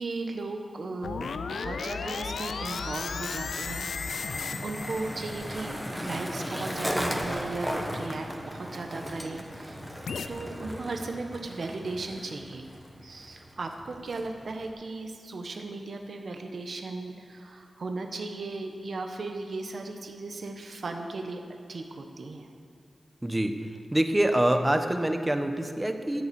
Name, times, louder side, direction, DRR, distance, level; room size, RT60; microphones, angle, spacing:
voice 1, 0.0-4.3 4.6-9.8 10.3-12.7 13.0-21.4 21.7-22.5, right 3 dB, 65° right, 4 dB, 1.3 m, -36 dB
sound 1, 1.0-6.3 10.1-10.3, left 5 dB, 90° left, 0.5 m, -35 dB
Skateboard, 2.0-14.7, equal, 5° left, 1.4 m, -37 dB
voice 2, 23.2-23.5 23.9-26.3, right 1 dB, 15° right, 7 dB, 1.0 m, -25 dB
13.5 x 8.1 x 7.0 m, 2.5 s
wide cardioid pair, 75°, 0 cm